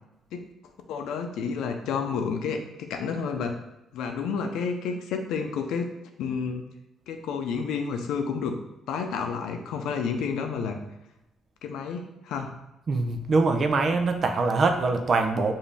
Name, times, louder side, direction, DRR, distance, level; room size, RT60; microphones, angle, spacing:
voice 1, 0.9-3.6 3.9-5.9 6.2-6.7 7.1-8.6 8.9-10.8 11.6-12.6, left 5 dB, 85° left, 5 dB, 0.5 m, -30 dB
voice 2, 12.9-15.5, right 3 dB, 50° right, 6 dB, 0.6 m, -23 dB
5.1 x 2.7 x 3.3 m, 0.92 s
cardioid pair, 90°, 0 cm